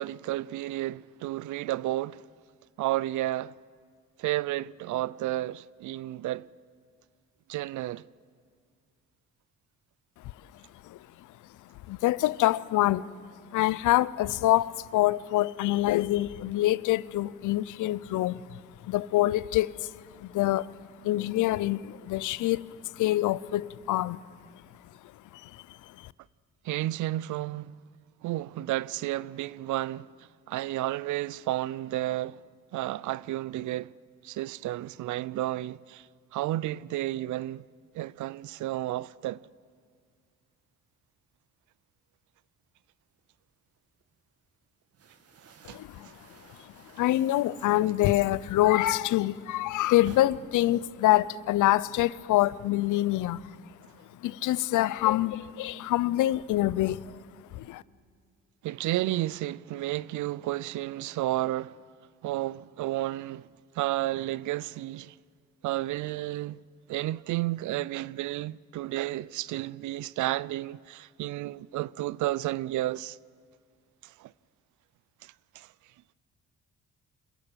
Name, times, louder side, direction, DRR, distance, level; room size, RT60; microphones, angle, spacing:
voice 1, 0.0-2.2 2.8-3.5 4.2-6.5 7.5-8.0 26.6-27.8 28.2-30.1 30.5-32.4 32.7-33.9 34.2-36.1 36.3-37.6 37.9-39.4 45.7-45.8 58.6-61.8 62.2-63.5 63.8-65.1 65.6-66.6 66.9-73.2 74.0-74.3 75.2-75.7, right 15 dB, 75° right, 0.5 m, -32 dB
voice 2, 10.8-11.3 11.9-13.1 13.4-20.7 21.0-24.2 25.3-26.1 45.6-46.1 46.6-53.5 54.2-57.2 57.5-57.8, left 15 dB, 80° left, 0.6 m, -26 dB
sound 1, 43.2-44.2 44.5-48.9 49.2-50.2, right 5 dB, 55° right, 2.1 m, -53 dB
26.0 x 14.5 x 9.0 m
cardioid pair, 90°, 30 cm